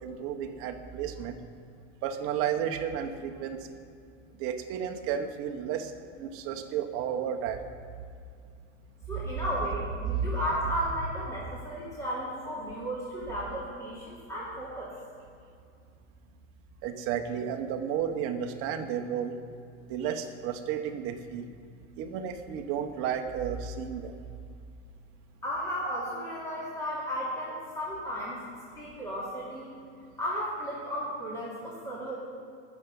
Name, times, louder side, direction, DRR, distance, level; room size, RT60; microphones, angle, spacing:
voice 1, 0.0-1.4 2.0-3.8 4.4-5.9 6.2-7.6 10.1-10.3 16.8-19.4 19.9-21.4 22.0-24.2, right 8 dB, 35° right, 6 dB, 1.0 m, -32 dB
voice 2, 9.1-14.9 25.4-28.4 28.8-29.7 30.2-32.1, equal, 10° left, -8 dB, 2.7 m, -34 dB
20.0 x 7.2 x 5.4 m, 2.4 s
supercardioid pair, 160°, 37 cm